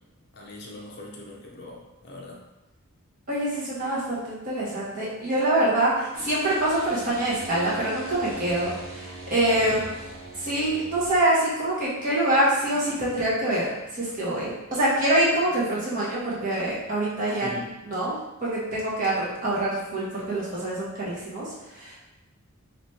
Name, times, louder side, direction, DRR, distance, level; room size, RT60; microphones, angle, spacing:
voice 1, 0.3-2.4 9.6-9.8 17.4-17.7, left 2 dB, 50° left, -2 dB, 0.7 m, -40 dB
voice 2, 3.3-8.7 9.3-9.9 10.4-13.7 13.9-17.6 17.8-21.5 21.7-21.9, right 1 dB, 35° right, -8 dB, 1.3 m, -25 dB
sound 1, 6.1-11.2, right 2 dB, 65° right, 0.8 m, -41 dB
3.2 x 3.1 x 4.2 m, 1.0 s
head